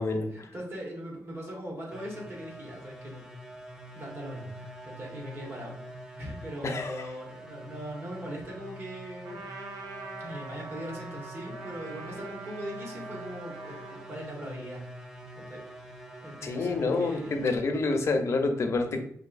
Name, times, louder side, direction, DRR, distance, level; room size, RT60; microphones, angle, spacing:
voice 1, 0.0-3.2 3.9-5.9 6.2-9.5 10.2-15.0 15.4-17.5, equal, 40° right, -3 dB, 1.5 m, -40 dB
sound 1, 1.9-17.6, right 1 dB, 10° right, 0.5 m, -46 dB
voice 2, 6.6-7.1 16.4-19.0, left 3 dB, 50° left, 4 dB, 0.6 m, -28 dB
Trumpet, 9.2-14.1, right 3 dB, 75° right, 0.7 m, -44 dB
5.5 x 2.6 x 2.5 m, 0.64 s
wide cardioid pair, 125°, 6 cm